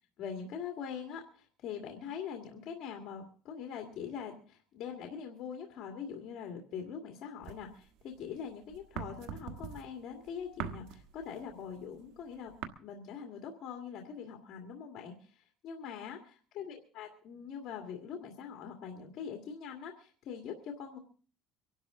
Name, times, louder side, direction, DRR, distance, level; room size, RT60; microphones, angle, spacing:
voice 1, 0.2-12.5 12.8-21.0, left 7 dB, 50° left, 2 dB, 2.2 m, -43 dB
sound 1, 7.4-8.3 8.6-12.6, right 9 dB, 80° right, 1.4 m, -42 dB
24.5 x 12.0 x 3.8 m, 0.42 s
cardioid pair, 155°, 0 cm